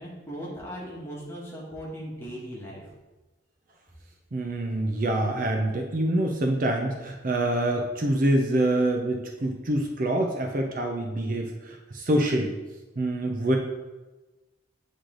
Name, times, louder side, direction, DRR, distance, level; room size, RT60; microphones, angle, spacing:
voice 1, 0.0-2.8, equal, 15° left, -5 dB, 1.4 m, -38 dB
voice 2, 4.3-12.6 13.0-13.6, right 1 dB, 45° right, 2 dB, 0.6 m, -26 dB
8.1 x 3.2 x 3.8 m, 1.1 s
head